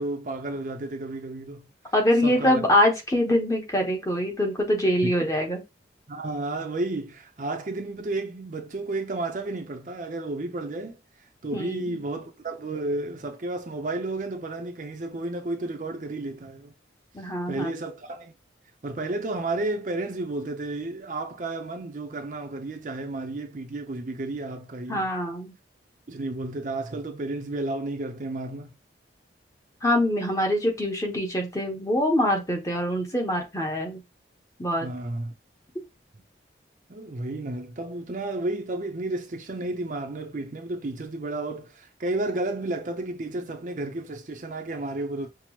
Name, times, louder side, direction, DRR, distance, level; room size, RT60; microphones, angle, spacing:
voice 1, 0.0-1.7 2.2-2.6 6.1-11.0 11.4-16.7 17.5-18.3 18.8-25.1 26.1-28.8 34.8-35.3 36.9-45.3, right 2 dB, 45° right, 0.5 m, -32 dB
voice 2, 1.9-5.6 11.5-12.0 17.1-17.7 24.9-25.5 29.8-34.0 34.6-34.9, left 1 dB, 15° left, 0.8 m, -24 dB
5.8 x 2.0 x 3.0 m
head